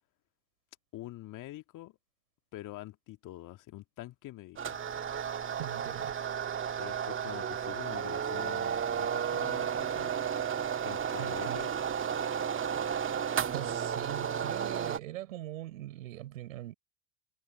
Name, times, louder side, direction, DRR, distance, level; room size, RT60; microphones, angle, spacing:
voice 1, 0.9-2.0 2.5-4.8 6.8-10.1 10.8-11.7, left 16 dB, 50° left, 2.2 m, -45 dB
sound 1, 4.6-15.0, right 8 dB, 30° right, 1.9 m, -33 dB
voice 2, 5.6-6.4 11.2-11.6 13.5-16.7, right 14 dB, 75° right, 6.1 m, -42 dB
figure-of-eight pair, 65°, 41 cm